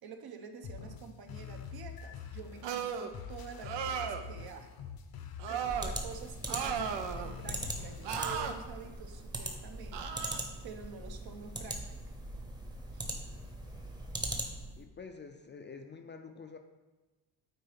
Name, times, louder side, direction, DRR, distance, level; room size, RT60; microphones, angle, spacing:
voice 1, 0.0-4.7 5.5-10.2 10.6-12.1 12.9-13.1, right 5 dB, 60° right, 5 dB, 1.0 m, -48 dB
sound 1, 0.6-8.6, left 6 dB, 55° left, 0.8 m, -46 dB
sound 2, 2.6-3.1 3.6-4.3 5.4-5.9 6.5-7.3 8.0-8.5 9.9-10.4, right 7 dB, 85° right, 0.8 m, -35 dB
sound 3, 5.7-14.8, right 1 dB, 10° right, 0.9 m, -40 dB
voice 2, 14.8-16.6, left 5 dB, 25° left, 5 dB, 0.5 m, -47 dB
9.1 x 4.2 x 5.7 m, 1.2 s
cardioid pair, 150°, 42 cm